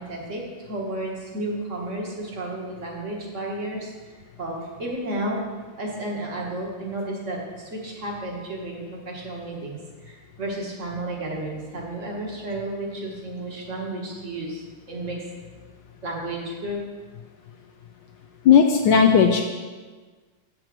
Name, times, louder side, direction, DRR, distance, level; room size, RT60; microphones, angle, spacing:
voice 1, 0.0-4.1 4.4-5.4 5.8-15.2 16.0-16.8, right 1 dB, 40° right, -1 dB, 1.6 m, -32 dB
voice 2, 18.4-19.4, left 7 dB, 75° left, 4 dB, 1.1 m, -15 dB
7.8 x 6.1 x 6.0 m, 1.4 s
omnidirectional pair, 2.4 m